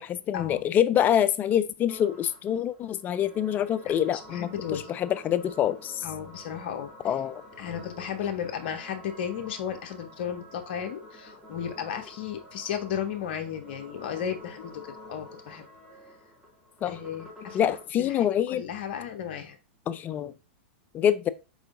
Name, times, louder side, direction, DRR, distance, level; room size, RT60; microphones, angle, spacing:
voice 1, 0.0-6.1 7.0-7.4 16.8-16.9 17.5-18.6 19.9-20.3 20.9-21.3, left 10 dB, 30° left, 0.4 m, -26 dB
sound 1, 1.9-17.9, left 1 dB, 5° right, 2.7 m, -49 dB
voice 2, 3.8-4.9 6.0-7.1 7.6-15.6 16.9-19.6, left 8 dB, 60° left, 0.8 m, -34 dB
4.8 x 4.4 x 2.5 m
hypercardioid pair, 115°, 6 cm